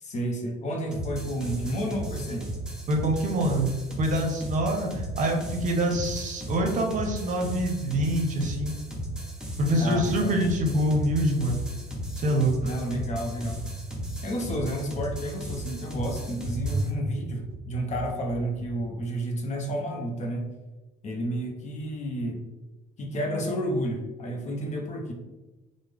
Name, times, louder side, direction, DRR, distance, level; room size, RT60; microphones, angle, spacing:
voice 1, 0.0-2.5 9.8-10.3 12.6-13.6 14.2-20.5 21.0-22.4 23.0-25.1, equal, 45° left, 2 dB, 0.7 m, -31 dB
sound 1, 0.9-16.9, right 1 dB, 5° right, 0.6 m, -36 dB
voice 2, 2.9-3.7 4.0-8.8 9.6-11.6 12.2-12.5, right 1 dB, 50° right, 2 dB, 0.6 m, -25 dB
sound 2, 10.6-19.1, right 1 dB, 85° right, 0.5 m, -39 dB
3.4 x 2.0 x 3.3 m, 1.1 s
cardioid pair, 110°, 17 cm